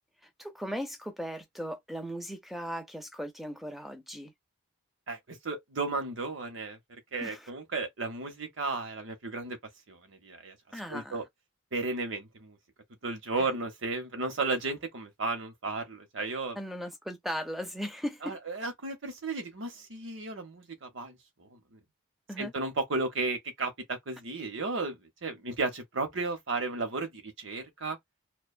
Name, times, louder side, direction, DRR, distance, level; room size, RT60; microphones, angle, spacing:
voice 1, 0.4-4.3 7.2-7.5 10.7-11.2 13.4-13.5 16.6-18.4 22.3-22.5, equal, ahead, 0.4 m, -37 dB
voice 2, 5.1-6.8 7.1-9.6 9.9-10.6 10.9-11.2 11.7-12.6 13.0-16.6 18.2-21.8 22.4-28.0, right 3 dB, 60° right, 0.8 m, -34 dB
2.5 x 2.2 x 2.4 m
head